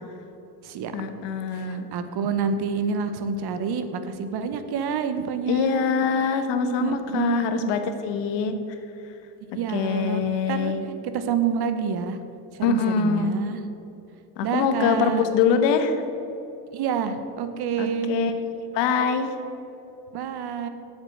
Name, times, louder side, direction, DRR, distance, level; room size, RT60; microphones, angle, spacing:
voice 1, 0.9-1.9 5.5-8.6 9.7-10.8 12.6-13.4 14.4-16.0 17.8-18.3 18.7-19.3, left 6 dB, 70° left, 8 dB, 1.2 m, -24 dB
voice 2, 1.5-5.9 6.2-6.5 6.8-7.6 9.5-10.7 11.1-12.2 12.5-13.6 14.4-15.2 16.7-18.2 20.1-20.7, right 6 dB, 55° right, 9 dB, 1.1 m, -28 dB
8.0 x 7.2 x 7.9 m, 3.0 s
supercardioid pair, 85°, 46 cm